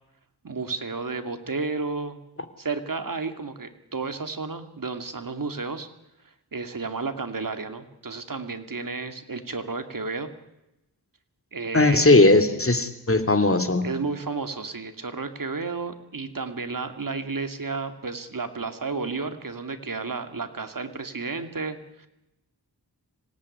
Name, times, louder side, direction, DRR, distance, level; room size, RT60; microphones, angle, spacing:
voice 1, 0.4-2.2 2.6-5.9 6.5-10.3 11.5-12.1 13.8-22.1, right 4 dB, 55° right, 8 dB, 2.5 m, -32 dB
voice 2, 11.7-13.8, left 2 dB, 35° left, 9 dB, 2.9 m, -18 dB
25.5 x 18.0 x 9.8 m, 0.91 s
wide cardioid pair, 70°, 40 cm